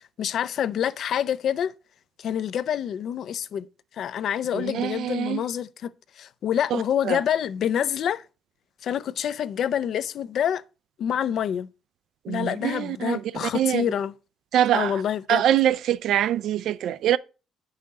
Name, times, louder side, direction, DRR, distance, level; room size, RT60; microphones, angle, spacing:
voice 1, 0.0-1.7 2.2-3.7 3.9-5.9 6.2-8.2 8.8-10.6 11.0-11.7 12.3-14.1 14.7-15.4, left 9 dB, 55° left, 0.5 m, -27 dB
voice 2, 4.5-5.4 6.7-7.2 12.2-13.8 14.5-15.0 15.3-17.2, right 11 dB, 65° right, 0.4 m, -24 dB
9.8 x 5.6 x 3.7 m
cardioid pair, 150°, 0 cm